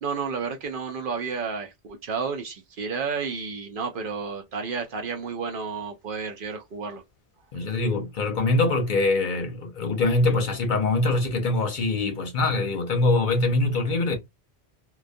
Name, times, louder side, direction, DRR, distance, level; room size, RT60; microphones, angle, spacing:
voice 1, 0.0-7.0, right 5 dB, 60° right, 0.7 m, -31 dB
voice 2, 7.5-14.2, left 2 dB, 55° left, 0.7 m, -23 dB
2.2 x 2.2 x 2.5 m
omnidirectional pair, 1.1 m